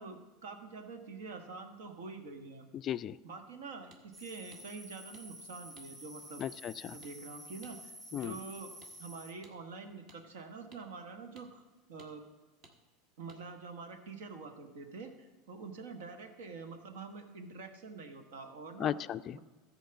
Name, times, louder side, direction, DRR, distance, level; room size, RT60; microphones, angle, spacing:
voice 1, 0.0-2.7 3.2-6.4 6.9-11.6 11.9-12.2 13.2-19.0 19.3-19.4, right 4 dB, 75° right, 7 dB, 1.4 m, -46 dB
voice 2, 2.7-3.2 6.4-7.0 8.1-8.4 18.8-19.4, left 10 dB, 40° left, 15 dB, 0.3 m, -36 dB
sound 1, 3.9-4.0 4.5-4.6 5.1-5.2 5.8-5.9 6.4-6.5 7.0-7.1 7.6-7.8 8.2-8.3 8.8-8.9 9.4-9.6 10.1-10.2 10.7-10.8 11.4-11.5 12.0-12.1 12.6-12.8 13.3-13.4, right 2 dB, 45° right, 1.7 m, -58 dB
sound 2, 4.1-9.3, right 1 dB, 20° right, 2.3 m, -51 dB
13.5 x 4.6 x 7.0 m, 1.4 s
hypercardioid pair, 90°, 0 cm